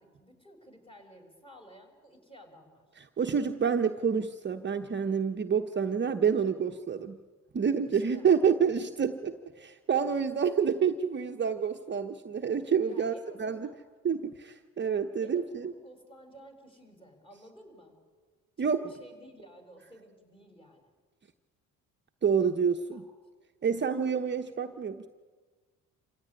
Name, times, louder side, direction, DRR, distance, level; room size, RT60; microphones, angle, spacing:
voice 1, 0.0-2.9 7.9-8.3 12.8-13.8 15.2-18.0 18.6-20.9 22.9-23.1, right 1 dB, 15° left, 4 dB, 6.2 m, -53 dB
voice 2, 3.0-7.2 7.5-13.1 13.4-13.7 14.0-15.7 18.6-18.9 22.2-23.1 23.6-25.1, right 6 dB, 35° right, 5 dB, 1.1 m, -28 dB
27.0 x 16.0 x 9.8 m, 1.5 s
supercardioid pair, 80°, 33 cm